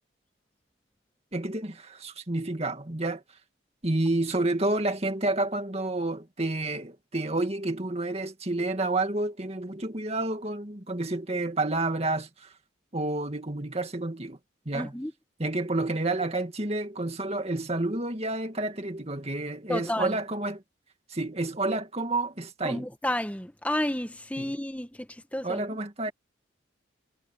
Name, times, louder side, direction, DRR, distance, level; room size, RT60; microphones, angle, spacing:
voice 1, 1.3-3.2 3.8-12.5 12.9-14.4 14.7-14.9 15.4-20.6 21.1-22.9 24.4-24.6 25.4-26.1, right 2 dB, 35° right, 2.2 m, -29 dB
voice 2, 14.7-15.1 19.7-20.1 22.6-25.6, left 1 dB, 10° left, 1.2 m, -31 dB
head